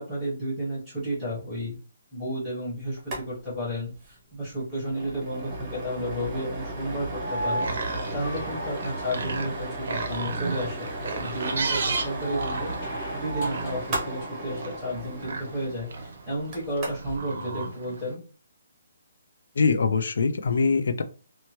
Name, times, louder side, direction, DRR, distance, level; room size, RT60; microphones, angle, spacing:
voice 1, 0.0-1.8 2.1-18.2, equal, 5° left, -9 dB, 1.1 m, -32 dB
sound 1, 3.0-3.2 3.5-3.6 3.9-4.1 4.5-17.2, right 1 dB, 15° right, 0.7 m, -36 dB
sound 2, 7.1-9.6 11.5-13.9 15.6-15.7, right 1 dB, 25° left, 0.7 m, -35 dB
sound 3, 7.3-18.1, right 4 dB, 50° right, 0.6 m, -35 dB
voice 2, 19.6-21.0, left 4 dB, 60° left, 8 dB, 0.4 m, -23 dB
2.8 x 2.2 x 2.9 m, 0.36 s
hypercardioid pair, 175°, 0 cm